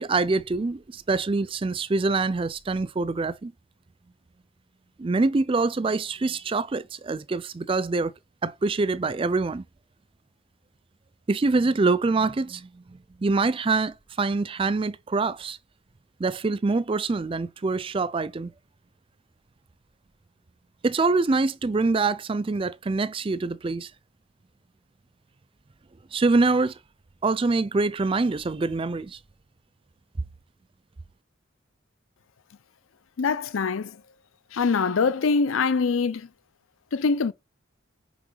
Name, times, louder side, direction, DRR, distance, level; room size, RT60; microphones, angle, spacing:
voice 1, 0.0-3.5 5.0-8.1 8.4-9.6 11.3-15.6 16.2-18.5 20.8-23.9 26.1-26.7 27.2-29.2, right 3 dB, 25° right, 0.4 m, -25 dB
voice 2, 33.2-34.0 34.5-36.3 36.9-37.3, left 5 dB, 85° left, 0.5 m, -23 dB
6.1 x 5.3 x 3.9 m
head